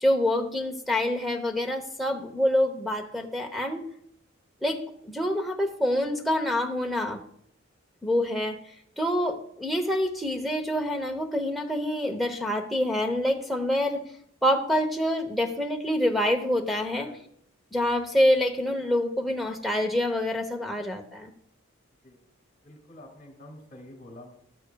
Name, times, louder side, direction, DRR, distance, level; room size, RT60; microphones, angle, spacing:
voice 1, 0.0-3.8 4.6-4.8 5.0-7.2 8.0-8.6 9.0-14.0 14.4-17.1 17.7-21.3, left 1 dB, ahead, 5 dB, 0.8 m, -26 dB
voice 2, 22.6-24.4, left 1 dB, 35° left, 3 dB, 2.1 m, -47 dB
13.5 x 12.5 x 2.3 m, 0.70 s
head